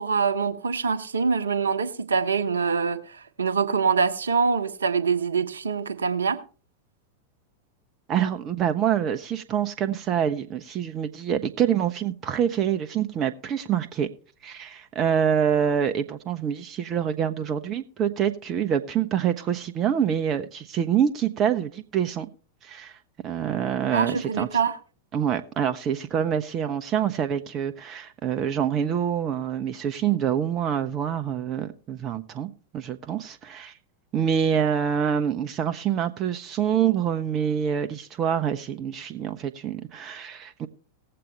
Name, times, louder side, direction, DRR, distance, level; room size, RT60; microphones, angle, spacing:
voice 1, 0.0-6.4 23.9-24.8, right 5 dB, 70° right, 0.8 m, -24 dB
voice 2, 8.1-14.1 14.4-22.3 22.6-22.9 23.2-24.5 25.1-33.7 34.1-40.7, right 8 dB, 30° right, 0.6 m, -26 dB
18.5 x 7.7 x 3.2 m
figure-of-eight pair, 90°, 0 cm